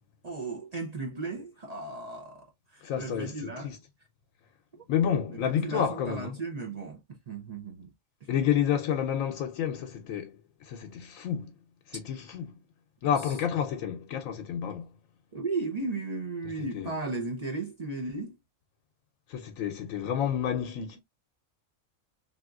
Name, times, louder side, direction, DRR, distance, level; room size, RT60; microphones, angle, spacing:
voice 1, 0.2-3.8 5.3-7.9 15.3-18.4, right 3 dB, 45° right, 0.5 m, -35 dB
voice 2, 2.8-3.8 4.9-6.4 8.3-10.4 10.6-11.5 11.9-12.5 13.0-14.9 16.7-16.9 19.3-21.0, left 8 dB, 75° left, 1.0 m, -30 dB
3.4 x 2.9 x 2.3 m
omnidirectional pair, 1.4 m